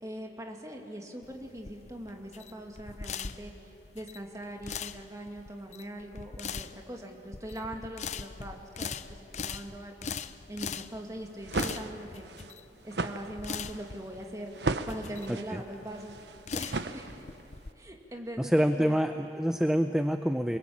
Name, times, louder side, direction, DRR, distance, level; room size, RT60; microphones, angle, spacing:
voice 1, 0.0-10.1 10.5-12.3 12.8-14.5 14.8-16.1 16.5-17.2 17.8-19.0, right 1 dB, 20° right, 2 dB, 2.4 m, -42 dB
sound 1, 1.2-17.7, left 6 dB, 40° left, 0.7 m, -41 dB
sound 2, 11.2-17.5, right 3 dB, 80° right, 1.0 m, -36 dB
voice 2, 15.3-15.6 18.4-20.6, equal, 5° right, 7 dB, 0.6 m, -27 dB
29.0 x 21.0 x 8.7 m, 2.9 s
head